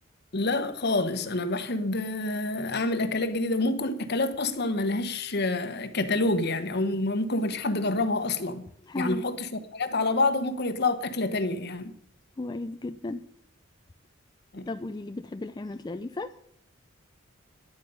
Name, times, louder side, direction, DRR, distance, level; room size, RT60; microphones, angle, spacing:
voice 1, 0.3-8.6 8.9-11.9 14.5-14.7, left 2 dB, 55° left, 1.0 m, -27 dB
voice 2, 8.8-9.3 12.4-13.2 14.6-16.3, left 2 dB, 20° left, 0.4 m, -35 dB
11.0 x 9.4 x 5.4 m
head